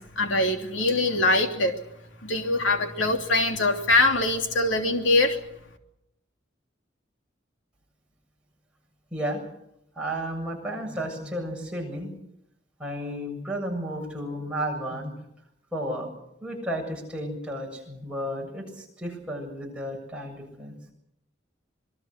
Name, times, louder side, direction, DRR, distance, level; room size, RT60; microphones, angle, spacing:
voice 1, 0.0-1.8 2.2-5.4, left 2 dB, 80° left, 4 dB, 3.1 m, -23 dB
voice 2, 9.1-9.4 10.0-12.1 12.8-15.1 15.7-16.1 16.4-20.9, equal, 5° right, -2 dB, 7.6 m, -33 dB
26.5 x 22.0 x 6.7 m, 0.80 s
head